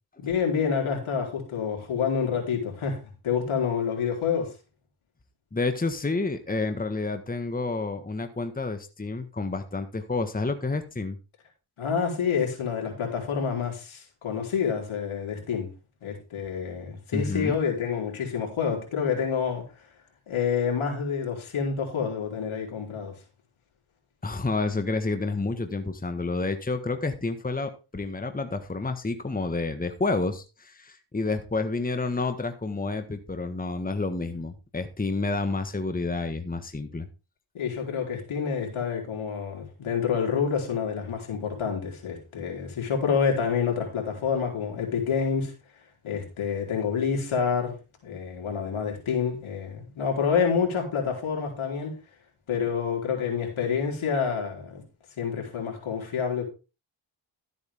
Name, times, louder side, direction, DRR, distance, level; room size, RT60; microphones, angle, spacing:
voice 1, 0.2-3.0 3.2-4.5 11.8-15.7 16.0-19.6 20.3-23.2 37.5-45.5 46.0-47.8 48.0-51.9 52.5-54.8 55.2-56.4, left 6 dB, 75° left, 4.0 m, -28 dB
voice 2, 5.5-11.2 17.1-17.5 24.2-37.1, left 3 dB, 15° left, 1.5 m, -29 dB
13.0 x 8.3 x 3.6 m
cardioid pair, 60°, 49 cm